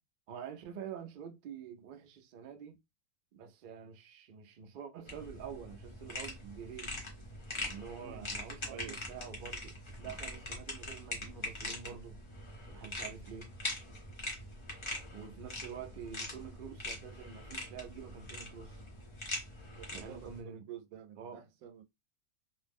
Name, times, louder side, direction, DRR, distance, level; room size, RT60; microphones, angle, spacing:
voice 1, 0.3-2.8 3.3-7.0 7.7-9.7 10.0-12.2 12.7-13.5 15.1-18.8 19.9-20.7 21.2-21.4, right 7 dB, 60° right, 0.5 m, -47 dB
sound 1, 5.1-20.4, left 1 dB, 30° left, 0.7 m, -43 dB
voice 2, 8.7-9.0 19.7-21.8, right 10 dB, 85° right, 1.0 m, -49 dB
2.5 x 2.0 x 3.4 m
omnidirectional pair, 1.4 m